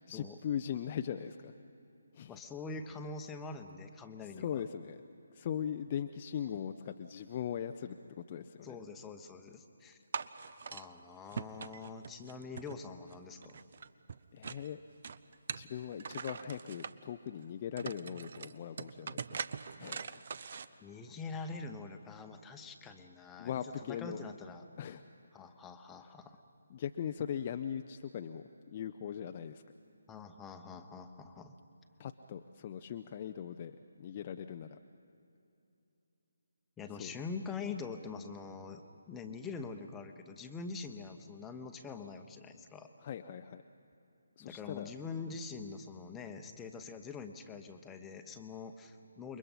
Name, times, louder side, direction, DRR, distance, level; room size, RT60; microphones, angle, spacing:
voice 1, 0.1-1.5 2.1-2.4 4.4-5.0 5.3-8.0 8.3-8.8 14.3-14.8 15.5-19.4 19.8-20.2 20.6-20.8 23.4-24.2 24.8-25.0 26.7-29.6 32.0-34.8 37.0-37.1 43.0-43.6 44.4-44.9, left 9 dB, 30° left, 7 dB, 0.6 m, -40 dB
voice 2, 2.3-4.6 8.6-10.0 10.7-13.6 20.8-24.6 25.3-26.4 30.1-31.6 36.8-38.8 39.1-42.9 44.4-49.4, left 4 dB, 10° left, 6 dB, 1.1 m, -44 dB
sound 1, 10.1-10.9 11.3-13.1 13.4-14.7 15.0-16.9 17.4-17.5 17.8-20.7, right 6 dB, 45° right, 0.7 m, -42 dB
29.0 x 22.5 x 5.7 m, 2.8 s
figure-of-eight pair, 145°, 0 cm